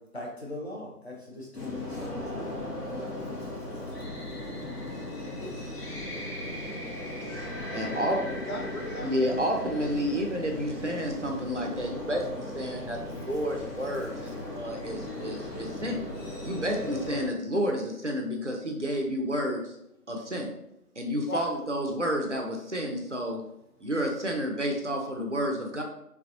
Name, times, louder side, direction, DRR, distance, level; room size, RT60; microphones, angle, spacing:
voice 1, 0.1-2.5 3.3-3.4, left 2 dB, 45° left, -2 dB, 0.8 m, -40 dB
sound 1, 1.5-17.3, left 1 dB, 85° left, 1.5 m, -37 dB
voice 2, 5.0-5.6 8.2-9.1 9.7-10.1 21.3-21.5, left 2 dB, 65° left, 0 dB, 1.0 m, -39 dB
voice 3, 7.7-8.2 9.0-14.3 14.6-16.0 16.4-19.7 20.1-20.5 21.0-23.4 23.8-25.8, equal, 50° right, 1 dB, 0.6 m, -30 dB
3.4 x 3.3 x 2.5 m, 0.78 s
figure-of-eight pair, 180°, 46 cm